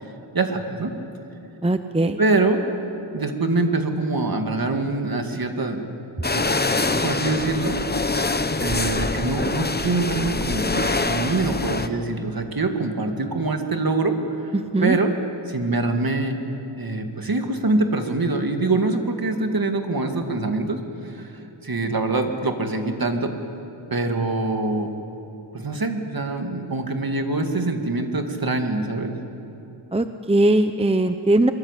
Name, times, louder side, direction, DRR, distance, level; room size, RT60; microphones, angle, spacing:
voice 1, 0.3-0.9 2.2-2.6 3.1-5.8 6.3-7.8 8.6-14.5 14.8-15.1 15.5-16.4 16.8-23.3 23.9-24.9 25.5-29.1, right 2 dB, 45° right, 4 dB, 2.4 m, -24 dB
voice 2, 1.6-2.2 14.7-15.0 29.9-31.5, right 1 dB, 10° right, 9 dB, 0.8 m, -20 dB
sound 1, 6.2-11.9, left 3 dB, 20° left, 0.9 m, -24 dB
24.0 x 22.0 x 8.4 m, 2.8 s
wide cardioid pair, 80°, 49 cm